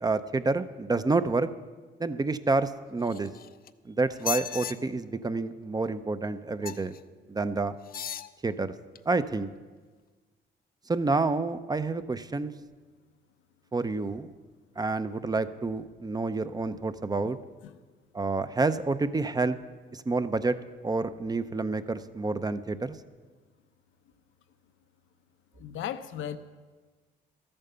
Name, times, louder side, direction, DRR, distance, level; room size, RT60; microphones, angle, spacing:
voice 1, 0.0-1.5 2.0-3.3 3.9-7.0 7.3-7.8 8.4-8.7 9.1-9.5 10.9-12.5 13.7-14.3 14.8-17.4 18.1-19.6 19.9-20.6 20.8-23.0, right 3 dB, 20° right, 12 dB, 0.6 m, -28 dB
sound 1, 3.0-3.7 4.1-4.7 6.6-7.0 7.8-8.3 9.0-9.1, left 8 dB, 50° left, 0.5 m, -36 dB
voice 2, 25.6-26.4, left 10 dB, 80° left, 11 dB, 0.8 m, -35 dB
13.5 x 8.9 x 6.8 m, 1.4 s
cardioid pair, 90°, 20 cm